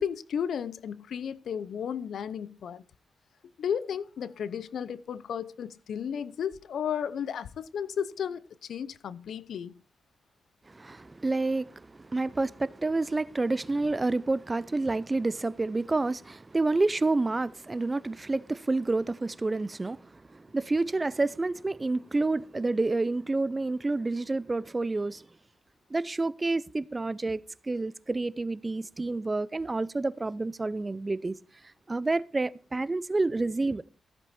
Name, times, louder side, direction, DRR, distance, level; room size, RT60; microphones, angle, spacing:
voice 1, 0.0-2.8 3.6-9.7, left 8 dB, 80° left, 0.7 m, -33 dB
voice 2, 10.7-25.3 25.9-31.4 31.9-33.8, right 3 dB, 25° right, 0.6 m, -29 dB
15.0 x 8.1 x 4.3 m
cardioid pair, 70°, 0 cm